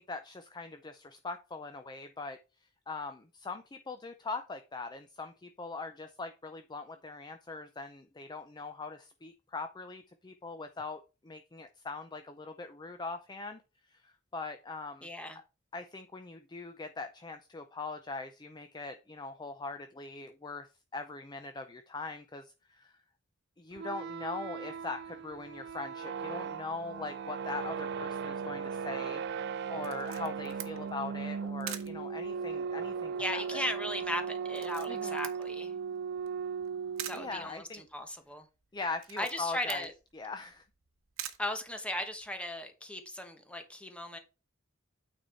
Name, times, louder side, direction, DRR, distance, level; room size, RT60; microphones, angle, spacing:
voice 1, 0.0-2.4 2.9-13.6 13.9-15.1 15.7-20.7 20.9-22.9 23.6-33.6 34.9-35.2 37.1-37.8 38.7-39.9 40.1-40.7, left 3 dB, 20° left, 0.5 m, -41 dB
voice 2, 15.0-15.4 33.1-35.7 37.0-38.5 39.2-39.9 41.4-44.2, left 1 dB, 5° left, 1.1 m, -37 dB
sound 1, 23.7-37.5, right 6 dB, 55° right, 0.3 m, -37 dB
Camera, 29.8-42.3, right 11 dB, 75° right, 0.9 m, -48 dB
9.0 x 4.3 x 4.4 m
head